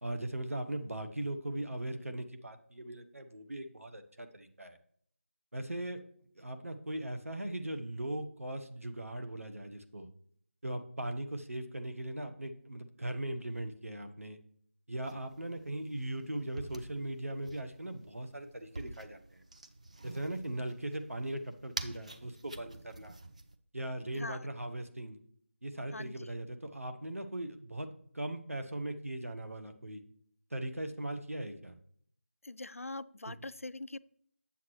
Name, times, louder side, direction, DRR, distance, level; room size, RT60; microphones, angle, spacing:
voice 1, 0.0-4.8 5.5-6.0 6.3-10.1 10.6-14.4 14.9-19.4 20.0-23.2 23.7-25.2 25.6-27.9 28.1-30.0 30.5-31.8 33.3-33.4, right 1 dB, 80° right, 6 dB, 1.1 m, -39 dB
sound 1, 15.0-23.5, right 2 dB, 30° right, 0.4 m, -48 dB
voice 2, 25.9-26.3 32.4-34.0, left 2 dB, 85° left, 16 dB, 0.3 m, -43 dB
8.1 x 7.2 x 3.2 m, 0.62 s
figure-of-eight pair, 165°, 7 cm